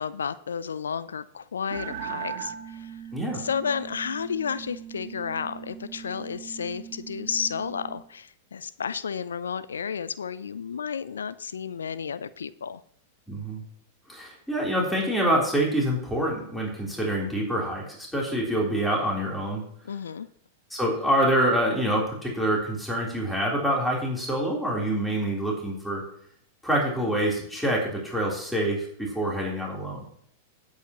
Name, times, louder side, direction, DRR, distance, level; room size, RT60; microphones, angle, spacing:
voice 1, 0.0-3.0 3.4-12.8 19.8-20.3, left 6 dB, 75° left, 16 dB, 0.5 m, -32 dB
sound 1, 1.7-8.1, right 9 dB, 50° right, 1.6 m, -40 dB
voice 2, 13.3-13.6 14.1-19.6 20.7-26.0 26.6-30.1, right 1 dB, 5° left, -4 dB, 3.8 m, -26 dB
17.5 x 8.3 x 3.1 m, 0.64 s
figure-of-eight pair, 95°, 0 cm